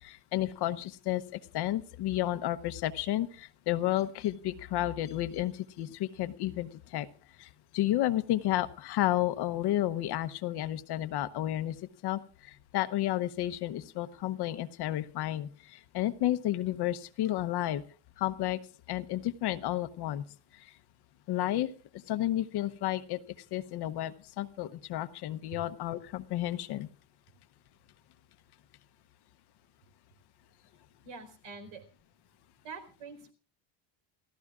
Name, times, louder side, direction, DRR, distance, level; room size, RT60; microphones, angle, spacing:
voice 1, 0.0-7.1 7.4-11.8 12.0-17.8 18.2-18.6 18.9-20.2 20.5-20.7 21.3-23.2 23.5-26.9, left 14 dB, 55° left, 12 dB, 0.9 m, -32 dB
voice 2, 31.0-31.8 32.6-33.3, right 4 dB, 70° right, 6 dB, 4.5 m, -45 dB
29.0 x 14.5 x 2.4 m, 0.36 s
cardioid pair, 150°, 49 cm